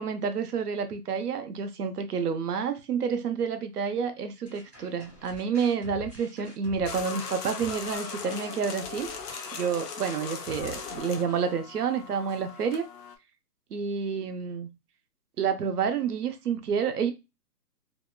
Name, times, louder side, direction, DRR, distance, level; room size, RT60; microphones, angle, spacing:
voice 1, 0.0-9.1 9.5-12.9 13.7-14.7 15.4-17.1, right 6 dB, 70° right, 0.7 m, -29 dB
sound 1, 4.5-11.0, left 2 dB, 5° right, 0.6 m, -47 dB
sound 2, 6.9-13.2, left 6 dB, 70° left, 0.6 m, -39 dB
2.7 x 2.1 x 2.2 m
hypercardioid pair, 165°, 49 cm